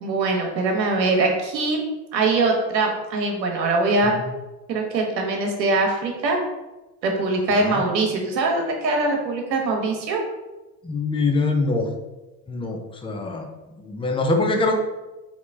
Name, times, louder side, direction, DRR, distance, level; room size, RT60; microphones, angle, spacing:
voice 1, 0.0-1.8 2.1-4.2 4.7-6.4 7.0-10.2, right 3 dB, 90° right, 1 dB, 1.0 m, -22 dB
voice 2, 10.8-11.9 12.5-13.4 13.8-14.7, left 3 dB, 10° left, 3 dB, 0.5 m, -23 dB
3.9 x 2.8 x 3.3 m, 1.1 s
hypercardioid pair, 80°, 49 cm